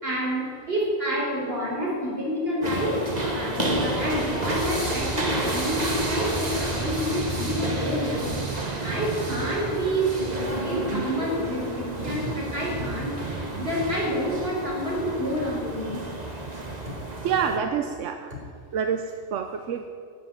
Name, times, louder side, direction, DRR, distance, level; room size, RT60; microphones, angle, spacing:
voice 1, 0.0-13.1 13.6-16.0, equal, 55° right, -4 dB, 4.6 m, -29 dB
sound 1, 2.6-17.6, right 2 dB, 35° right, 1.8 m, -30 dB
voice 2, 17.2-18.3 18.7-19.9, right 7 dB, 85° right, 7 dB, 1.1 m, -27 dB
12.0 x 8.3 x 9.6 m, 2.2 s
omnidirectional pair, 1.2 m